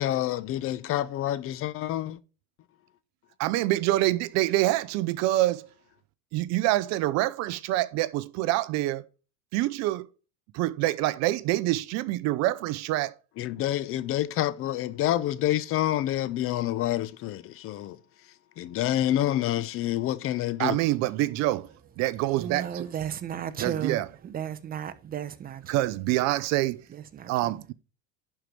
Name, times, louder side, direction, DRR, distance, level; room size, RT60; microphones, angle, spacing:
voice 1, 0.0-2.2 13.4-18.0 18.6-20.8, left 13 dB, 45° left, 0.7 m, -28 dB
voice 2, 3.4-5.7 6.3-9.1 9.5-10.1 10.5-13.1 20.6-21.7 22.0-22.9 23.6-24.1 25.7-26.8 27.3-27.7, right 16 dB, 55° right, 0.7 m, -26 dB
voice 3, 22.4-25.9 26.9-27.5, right 9 dB, 30° right, 0.9 m, -35 dB
11.5 x 4.7 x 5.2 m
supercardioid pair, 125°, 32 cm